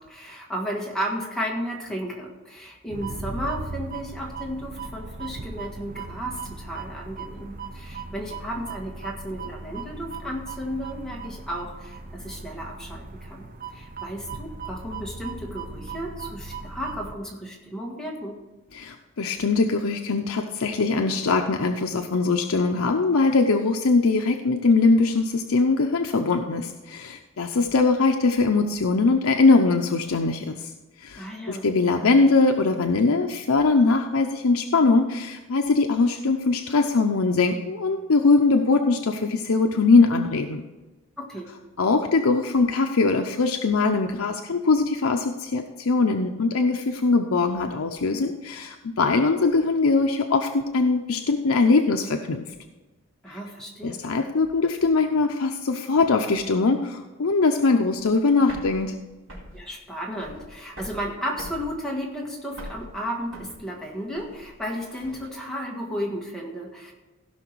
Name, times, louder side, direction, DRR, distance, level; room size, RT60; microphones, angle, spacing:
voice 1, 0.0-18.4 31.2-31.7 41.2-41.5 53.2-54.0 59.5-66.9, equal, 5° left, -2 dB, 1.7 m, -33 dB
sound 1, 2.9-17.1, right 4 dB, 40° right, 0.7 m, -38 dB
voice 2, 18.7-30.7 31.0-40.6 41.8-52.4 53.8-59.0, left 3 dB, 80° left, 5 dB, 0.7 m, -21 dB
sound 2, 58.1-65.3, equal, 75° right, 3.8 m, -43 dB
16.0 x 5.9 x 4.6 m, 1.2 s
head